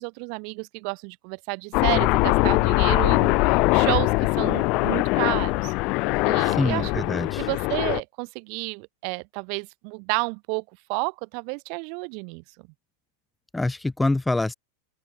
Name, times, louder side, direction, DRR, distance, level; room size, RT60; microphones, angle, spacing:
voice 1, 0.0-5.7 6.2-6.9 7.4-10.6 10.9-12.4, right 40 dB or more, 45° right, 2.8 m, -31 dB
Aircraft, 1.7-8.0, left 26 dB, 40° left, 1.8 m, -22 dB
voice 2, 6.4-7.5 13.5-14.5, left 2 dB, 5° left, 2.5 m, -25 dB
open air
figure-of-eight pair, 90°, 0 cm